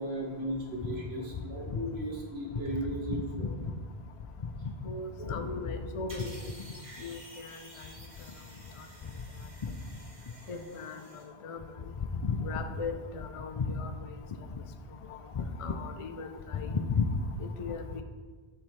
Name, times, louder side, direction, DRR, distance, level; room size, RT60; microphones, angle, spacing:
voice 1, 0.0-3.5 5.2-5.6, right 1 dB, 75° right, -2 dB, 1.5 m, -36 dB
voice 2, 4.6-6.3 7.0-7.2 9.6-9.7 10.5-11.0 11.4-11.6 12.2-13.9 15.4-17.2 17.6-18.0, left 4 dB, 50° left, 6 dB, 0.4 m, -34 dB
sound 1, 6.1-11.2, right 1 dB, 55° right, 1.7 m, -52 dB
7.5 x 3.7 x 4.5 m, 1.4 s
omnidirectional pair, 1.1 m